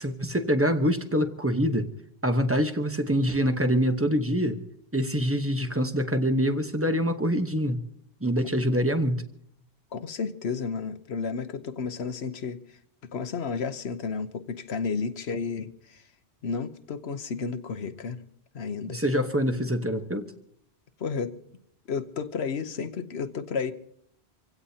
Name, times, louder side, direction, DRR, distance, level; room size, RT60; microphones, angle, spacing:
voice 1, 0.0-1.9 2.2-4.6 4.9-7.8 8.2-9.2 18.9-20.3, equal, 15° right, 7 dB, 1.0 m, -25 dB
voice 2, 9.9-12.6 13.1-16.0 16.4-18.2 18.5-19.0 21.0-21.3 21.9-23.7, left 5 dB, 75° left, 10 dB, 1.2 m, -32 dB
26.0 x 16.5 x 2.8 m, 0.68 s
omnidirectional pair, 1.1 m